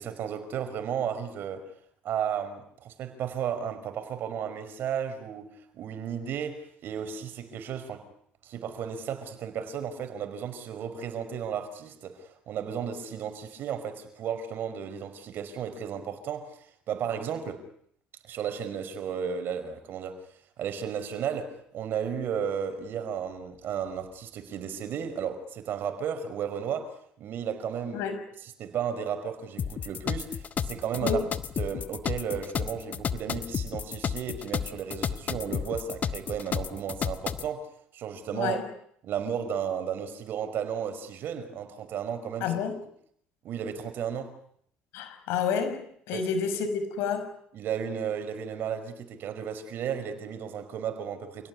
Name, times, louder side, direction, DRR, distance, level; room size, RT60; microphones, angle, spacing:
voice 1, 0.0-1.7 2.0-8.1 8.4-17.6 18.2-20.2 20.6-28.1 28.6-31.3 31.6-37.7 37.9-38.6 39.0-42.6 43.4-44.4 46.1-46.3 47.5-51.5, right 8 dB, 55° right, 5.1 m, -34 dB
sound 1, 29.6-37.5, left 7 dB, 40° left, 1.4 m, -32 dB
voice 2, 42.4-42.8 44.9-47.3, left 6 dB, 80° left, 5.9 m, -29 dB
28.0 x 18.0 x 9.8 m
cardioid pair, 110°, 4 cm